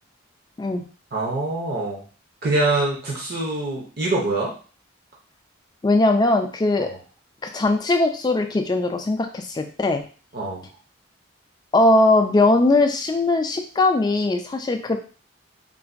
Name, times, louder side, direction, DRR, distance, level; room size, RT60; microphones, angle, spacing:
voice 1, 1.1-2.0 2.4-4.5 10.3-10.6, right 2 dB, 50° right, -3 dB, 0.6 m, -24 dB
voice 2, 5.8-6.9 7.4-10.0 11.7-15.0, left 2 dB, 20° left, 6 dB, 0.3 m, -20 dB
3.8 x 2.5 x 2.5 m, 0.38 s
head